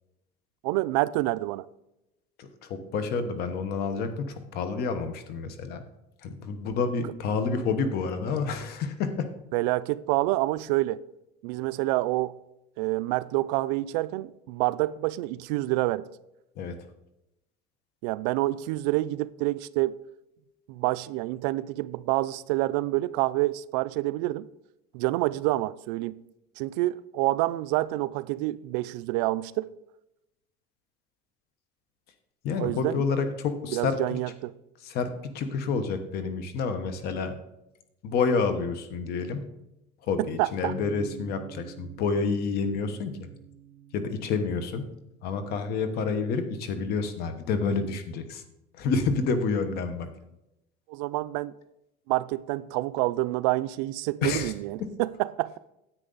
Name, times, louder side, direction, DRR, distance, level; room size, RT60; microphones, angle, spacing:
voice 1, 0.6-1.7 9.5-11.0 11.4-12.4 12.8-16.1 18.0-20.0 20.7-24.5 24.9-26.2 26.6-29.7 32.6-33.0 33.7-34.5 40.4-40.7 50.9-51.5 52.1-55.6, right 18 dB, 85° right, 0.4 m, -27 dB
voice 2, 2.4-5.8 6.2-9.3 16.6-16.7 32.4-33.9 34.8-37.4 38.0-39.4 40.1-43.1 43.9-44.9 45.2-48.4 48.8-50.1 54.2-54.5 54.8-54.9, left 4 dB, 50° left, 1.1 m, -29 dB
sound 1, 40.6-46.9, right 10 dB, 60° right, 0.9 m, -48 dB
10.0 x 8.1 x 4.0 m
cardioid pair, 150°, 20 cm